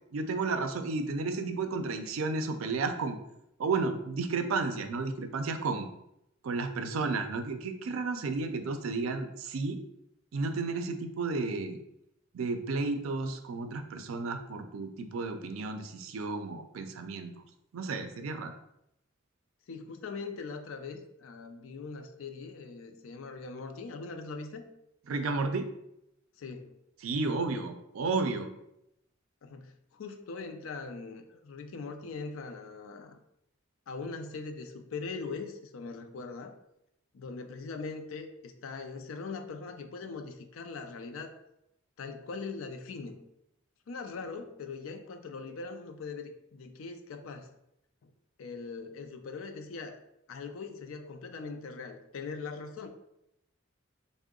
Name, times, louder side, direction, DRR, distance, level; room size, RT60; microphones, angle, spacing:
voice 1, 0.1-3.2 3.6-5.9 6.4-9.8 10.3-11.8 12.3-17.3 17.7-18.5 25.1-25.7 27.0-28.5, right 3 dB, 85° right, 8 dB, 0.4 m, -32 dB
voice 2, 19.7-24.7 26.4-26.7 29.4-33.2 33.9-36.5 37.1-41.3 42.0-43.2 43.9-47.5 48.0-48.1 48.4-50.0 50.3-52.9, left 4 dB, 80° left, 6 dB, 0.4 m, -41 dB
3.6 x 2.1 x 3.6 m, 0.82 s
head